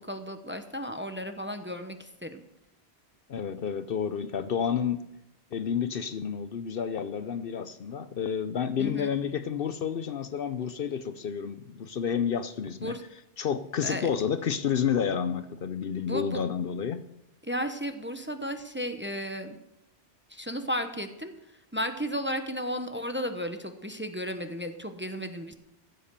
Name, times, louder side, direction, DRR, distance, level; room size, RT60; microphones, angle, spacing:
voice 1, 0.0-2.4 8.8-9.1 12.8-13.0 13.8-14.1 16.0-16.4 17.4-19.6 20.3-21.3 21.7-25.5, equal, 10° right, 7 dB, 0.9 m, -34 dB
voice 2, 3.3-5.1 5.5-13.0 13.4-17.0, left 7 dB, 60° left, 12 dB, 0.8 m, -30 dB
15.0 x 8.1 x 6.8 m, 0.88 s
omnidirectional pair, 1.1 m